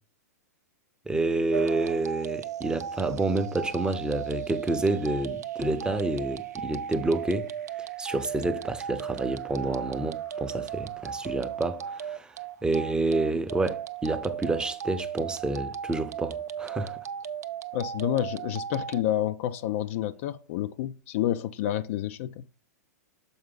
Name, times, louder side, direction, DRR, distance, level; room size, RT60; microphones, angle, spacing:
voice 1, 1.1-7.5 7.8-12.4 12.6-17.0, right 2 dB, 10° right, 0.6 m, -29 dB
sound 1, 1.5-19.0, right 9 dB, 70° right, 0.5 m, -36 dB
voice 2, 17.7-22.4, left 12 dB, 50° left, 0.4 m, -29 dB
7.0 x 4.7 x 3.8 m
figure-of-eight pair, 100°, 9 cm